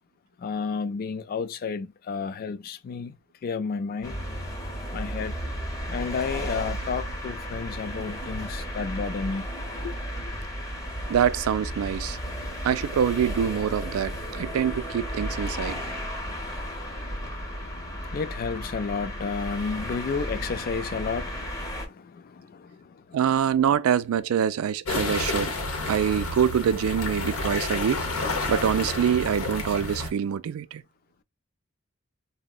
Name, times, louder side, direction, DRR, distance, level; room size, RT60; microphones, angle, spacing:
voice 1, 0.4-3.2 3.4-4.2 4.9-5.3 5.9-9.5 9.8-9.9 14.0-14.6 14.8-14.9 15.2-23.2, left 5 dB, 45° left, 0.3 m, -33 dB
sound 1, 4.0-21.9, equal, 15° left, 0.8 m, -34 dB
voice 2, 11.1-12.2 12.6-15.8 23.1-25.5 25.9-28.1 28.5-30.8, right 8 dB, 80° right, 0.3 m, -25 dB
sound 2, 24.8-30.1, left 2 dB, 85° left, 0.8 m, -30 dB
3.6 x 2.1 x 2.3 m
head